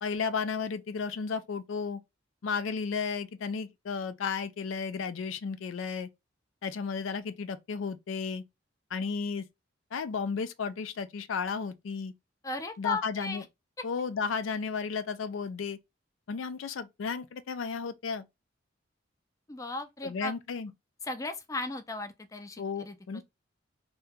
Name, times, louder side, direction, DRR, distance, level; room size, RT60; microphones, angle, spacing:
voice 1, 0.0-2.0 2.4-6.1 6.6-8.4 8.9-9.5 9.9-12.1 12.8-13.4 13.8-15.8 16.3-18.3 20.0-20.7 22.6-23.2, left 5 dB, 85° left, 0.4 m, -33 dB
voice 2, 12.4-13.4 19.5-20.3 21.0-23.2, left 3 dB, 15° left, 0.4 m, -36 dB
2.8 x 2.2 x 3.4 m
head